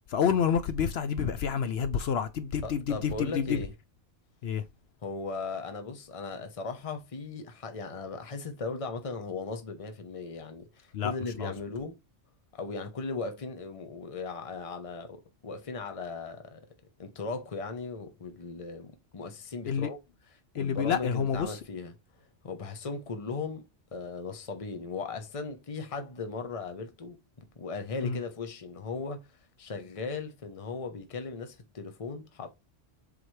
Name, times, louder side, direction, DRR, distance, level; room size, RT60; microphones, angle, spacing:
voice 1, 0.1-3.6 4.4-4.6 10.9-11.1 11.4-11.5 19.7-19.9 20.5-21.6 28.0-28.2, left 7 dB, 65° left, 0.8 m, -28 dB
voice 2, 2.6-3.7 5.0-12.0 12.5-16.6 17.0-20.0 20.5-21.9 22.4-29.2 29.6-32.5, left 4 dB, 30° left, 0.9 m, -37 dB
7.5 x 4.0 x 3.2 m
omnidirectional pair, 1.2 m